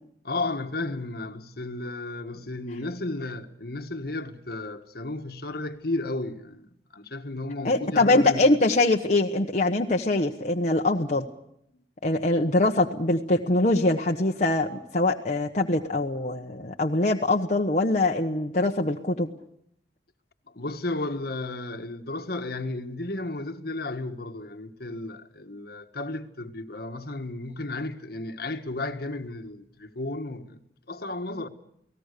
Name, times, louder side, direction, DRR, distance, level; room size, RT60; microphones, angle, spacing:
voice 1, 0.2-8.4 20.5-30.6 30.9-31.5, left 2 dB, 55° left, 1.6 m, -33 dB
voice 2, 7.6-11.3 12.0-19.3, left 2 dB, 40° left, 1.2 m, -23 dB
29.5 x 19.0 x 6.8 m
head